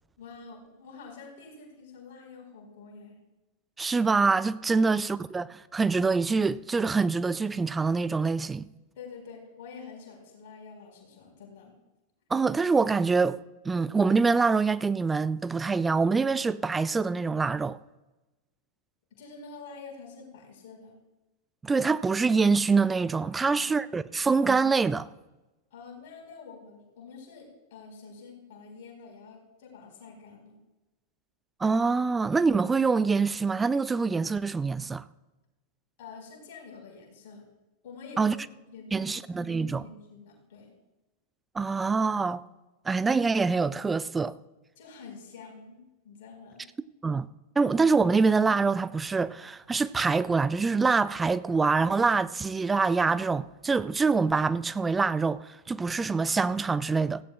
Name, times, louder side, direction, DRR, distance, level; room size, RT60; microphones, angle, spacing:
voice 1, 0.2-3.2 4.8-4.9 8.9-11.7 19.2-21.0 23.4-23.6 25.7-30.5 36.0-37.4 37.8-38.5 38.7-40.7 44.8-46.6, left 5 dB, 50° left, 4.7 m, -47 dB
voice 2, 3.8-8.7 12.3-17.8 21.6-25.1 31.6-35.0 38.2-38.4 38.9-39.8 41.5-42.4 42.9-44.3 47.0-47.3 47.6-57.2, right 4 dB, 15° right, 0.4 m, -25 dB
17.0 x 15.5 x 2.4 m
figure-of-eight pair, 90°, 0 cm